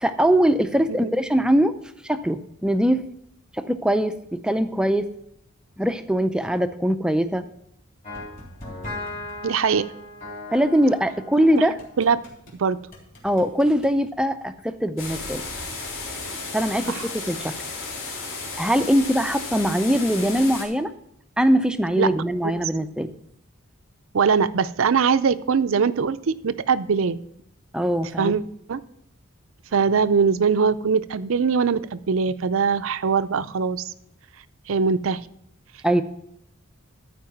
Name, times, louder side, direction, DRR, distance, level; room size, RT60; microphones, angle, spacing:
voice 1, 0.0-1.7 2.0-3.0 3.5-5.1 5.8-7.4 10.5-11.8 13.2-15.5 16.5-17.5 18.6-20.9 21.4-23.1 27.7-28.3 35.8-36.0, equal, 5° right, 10 dB, 0.4 m, -22 dB
sound 1, 8.0-12.6 12.9-13.9, left 2 dB, 40° left, 3.4 m, -38 dB
voice 2, 9.4-9.9 12.0-12.2 12.6-12.8 16.9-17.0 22.0-22.1 22.4-22.5 24.1-27.2 28.2-28.4 28.7-28.8 29.7-33.9 34.7-35.2, right 5 dB, 75° right, 14 dB, 0.5 m, -21 dB
sound 2, 15.0-20.6, left 3 dB, 70° left, 3.1 m, -33 dB
14.0 x 4.7 x 5.8 m, 0.76 s
head